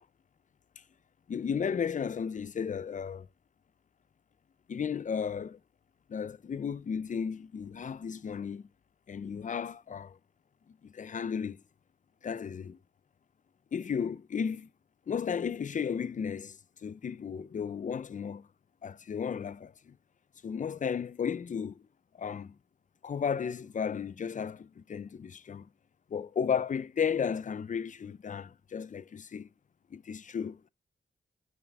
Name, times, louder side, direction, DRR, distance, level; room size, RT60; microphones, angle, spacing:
voice 1, 1.3-3.3 4.7-5.6 6.1-8.7 9.1-10.2 10.8-11.6 12.2-12.8 13.7-14.7 15.1-18.5 18.8-20.0 20.4-21.8 22.2-22.6 23.0-25.7 26.1-29.5 29.9-30.7, left 7 dB, 45° left, 0.4 m, -34 dB
10.5 x 4.0 x 5.1 m
cardioid pair, 75°, 19 cm